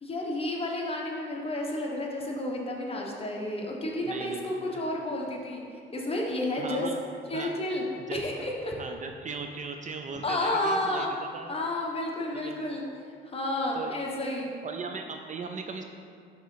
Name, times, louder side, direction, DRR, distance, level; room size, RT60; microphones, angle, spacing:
voice 1, 0.0-5.6 5.9-6.9 7.3-7.8 8.1-8.7 10.2-11.1 11.5-12.8 13.2-14.5, left 1 dB, 30° left, -1 dB, 1.1 m, -31 dB
voice 2, 4.0-4.8 6.6-7.0 7.3-7.5 8.1-8.2 8.8-11.1 11.3-11.6 12.3-12.6 13.7-13.9 14.6-15.8, right 4 dB, 40° right, 5 dB, 0.5 m, -38 dB
5.8 x 3.8 x 5.5 m, 2.3 s
cardioid pair, 90°, 20 cm